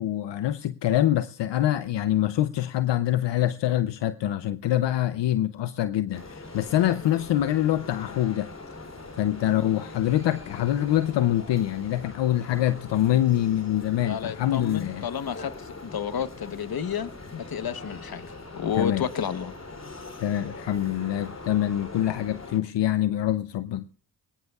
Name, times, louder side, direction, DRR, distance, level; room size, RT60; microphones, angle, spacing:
voice 1, 0.0-8.5 9.2-15.0 18.7-19.0 20.2-23.9, left 12 dB, 75° left, 0.7 m, -25 dB
sound 1, 6.1-22.6, left 2 dB, 35° left, 3.1 m, -42 dB
Mallet percussion, 7.4-10.0, left 14 dB, 80° right, 3.4 m, -57 dB
voice 2, 14.0-19.5, left 8 dB, 55° left, 1.1 m, -31 dB
21.0 x 19.0 x 2.4 m
cardioid pair, 50°, 43 cm